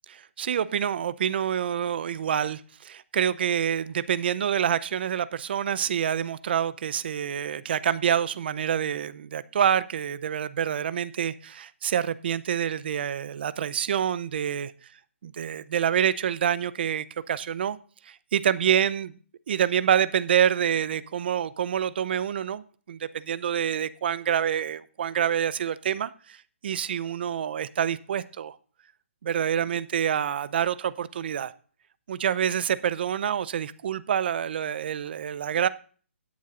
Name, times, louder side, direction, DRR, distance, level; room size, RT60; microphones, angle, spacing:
voice 1, 0.1-14.7 15.2-17.8 18.1-19.1 19.5-22.6 22.9-26.4 26.6-28.6 29.2-31.5 32.1-35.7, right 9 dB, 50° right, 0.7 m, -27 dB
18.0 x 7.3 x 2.5 m
hypercardioid pair, 155°, 7 cm